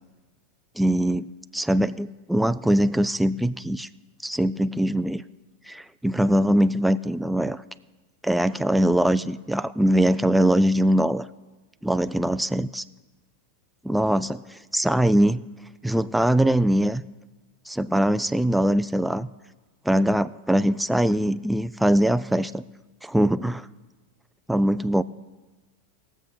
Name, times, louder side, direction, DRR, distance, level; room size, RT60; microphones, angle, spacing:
voice 1, 0.8-1.3 1.5-3.9 4.2-5.2 5.7-7.6 8.2-11.3 11.8-12.8 13.8-14.4 14.7-15.4 15.8-17.0 17.7-19.3 19.9-22.6 23.0-23.7 24.5-25.0, right 1 dB, 5° right, 13 dB, 0.4 m, -22 dB
18.5 x 7.2 x 4.0 m, 1.2 s
hypercardioid pair, 105°, 0 cm